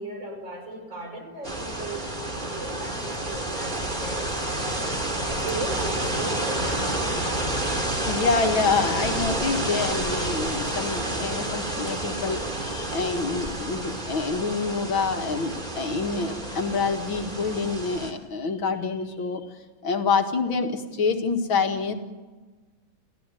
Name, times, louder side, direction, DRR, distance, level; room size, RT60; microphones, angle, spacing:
voice 1, 0.0-4.3 5.2-7.7, right 2 dB, 65° right, 3 dB, 6.5 m, -38 dB
sound 1, 1.4-18.1, right 1 dB, 20° right, 3.1 m, -29 dB
voice 2, 8.0-19.4 19.8-21.9, left 4 dB, 80° left, 5 dB, 2.6 m, -27 dB
28.5 x 16.0 x 9.2 m, 1.3 s
omnidirectional pair, 2.2 m